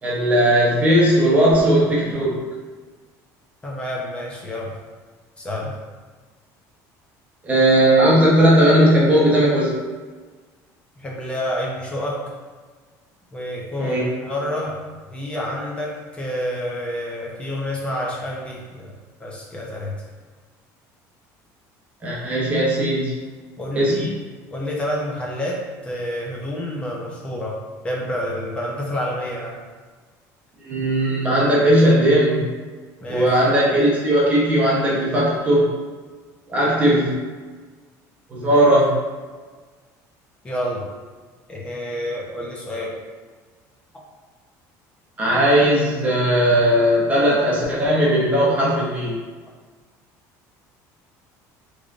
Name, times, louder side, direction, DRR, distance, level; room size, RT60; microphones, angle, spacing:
voice 1, 0.0-2.4 7.4-9.7 13.8-14.0 22.0-23.1 23.7-24.1 30.7-32.4 33.1-35.7 36.5-37.1 38.3-38.9 45.2-49.1, right 1 dB, 20° right, -6 dB, 0.9 m, -17 dB
voice 2, 3.6-4.7 5.4-5.8 11.0-12.3 13.3-14.8 15.1-18.9 19.2-19.9 23.6-24.1 24.5-29.6 33.0-33.3 38.4-38.7 40.4-40.9 41.5-43.0, equal, 15° left, -2 dB, 0.6 m, -28 dB
3.7 x 3.2 x 2.5 m, 1.4 s
cardioid pair, 160°, 7 cm